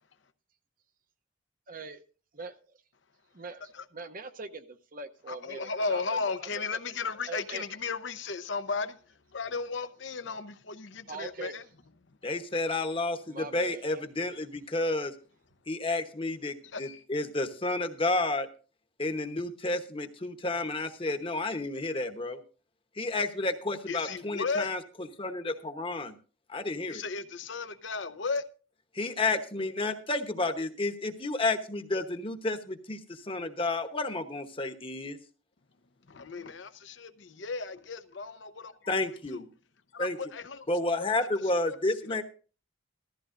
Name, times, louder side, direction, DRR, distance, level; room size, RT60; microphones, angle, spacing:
voice 1, 1.7-2.0 2.4-2.5 3.3-6.2 6.5-6.8 7.3-7.7 11.1-11.6 13.3-14.0, right 3 dB, 45° right, 0.8 m, -42 dB
voice 2, 5.3-9.0 9.3-11.6 16.7-17.0 23.9-24.7 26.9-28.5 36.1-39.0 39.3-39.4 39.9-40.7 41.0-41.1 41.6-41.8 42.1-42.2, left 4 dB, 65° left, 0.7 m, -35 dB
voice 3, 12.2-15.1 15.7-18.5 19.0-22.4 23.0-26.1 26.5-27.0 28.9-35.2 38.9-39.5 40.0-40.2 40.7-42.2, left 2 dB, 25° left, 1.0 m, -31 dB
15.0 x 14.0 x 2.6 m
head